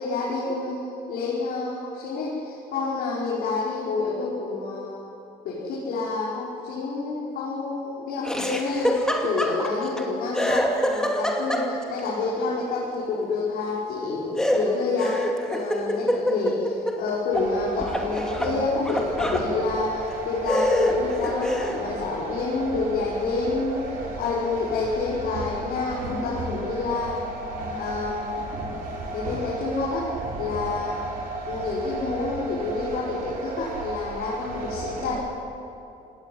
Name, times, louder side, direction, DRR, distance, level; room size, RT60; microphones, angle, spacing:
voice 1, 0.0-5.0 5.4-9.0 9.2-23.8 24.2-27.2 27.8-28.7 29.1-31.0 31.5-35.2, left 3 dB, 80° left, -6 dB, 5.5 m, -28 dB
Laughter, 8.2-10.0 10.3-12.0 14.4-17.5 17.8-19.5 20.1-20.2 20.5-21.8, equal, 5° left, 2.6 m, -26 dB
sound 1, 17.3-35.2, right 3 dB, 60° right, 6.2 m, -34 dB
28.0 x 18.5 x 9.6 m, 2.9 s
cardioid pair, 165°, 15 cm